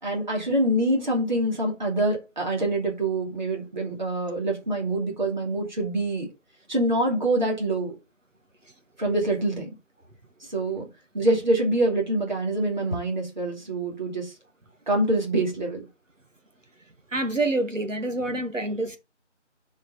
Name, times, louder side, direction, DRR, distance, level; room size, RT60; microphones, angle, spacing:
voice 1, 0.0-6.3 6.7-7.9 9.0-9.7 10.5-10.9 11.1-14.3 14.9-15.8, right 1 dB, 40° right, 2.7 m, -25 dB
voice 2, 17.1-19.0, right 2 dB, 90° right, 1.6 m, -27 dB
7.8 x 4.8 x 4.1 m
figure-of-eight pair, 165°, 37 cm